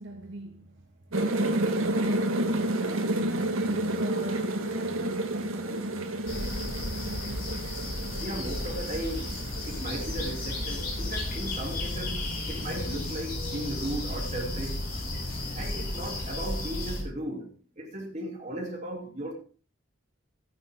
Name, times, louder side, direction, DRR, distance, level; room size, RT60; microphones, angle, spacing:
voice 1, 0.0-7.0, right 1 dB, 60° right, 1.9 m, -44 dB
sound 1, 1.1-13.0, right 1 dB, 85° right, 1.5 m, -31 dB
sound 2, 6.3-17.0, left 1 dB, 45° left, 5.3 m, -34 dB
voice 2, 8.2-9.3 9.6-12.2 12.4-14.8 15.6-17.5 17.8-19.3, right 1 dB, 35° right, 3.5 m, -36 dB
sound 3, 10.5-16.3, left 1 dB, 90° left, 1.1 m, -44 dB
14.5 x 11.0 x 3.8 m
head